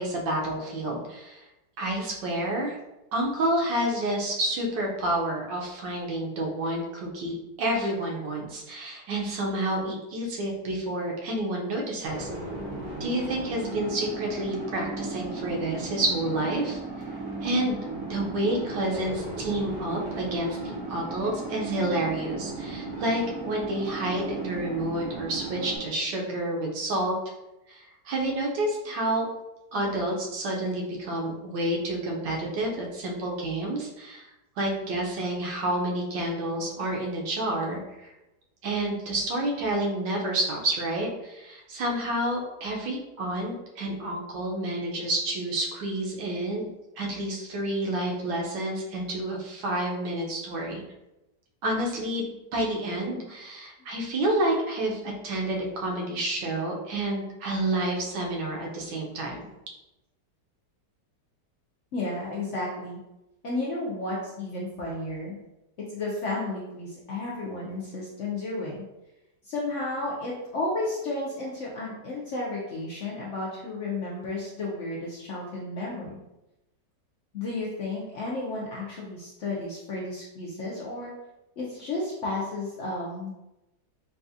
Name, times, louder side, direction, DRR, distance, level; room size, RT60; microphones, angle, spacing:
voice 1, 0.0-1.4 1.8-2.8 3.1-12.3 13.0-16.8 17.4-17.8 18.1-27.2 27.7-29.3 29.7-34.3 34.6-38.1 38.6-46.6 47.0-50.8 51.6-59.5, right 1 dB, 90° right, -1 dB, 1.4 m, -29 dB
sound 1, 12.1-25.8, right 2 dB, 65° right, 1.4 m, -36 dB
voice 2, 61.9-63.0 63.4-65.4 65.9-68.8 69.4-76.2 77.3-81.1 81.6-83.3, left 2 dB, 70° left, -4 dB, 0.7 m, -32 dB
4.0 x 2.4 x 2.6 m, 0.94 s
omnidirectional pair, 1.9 m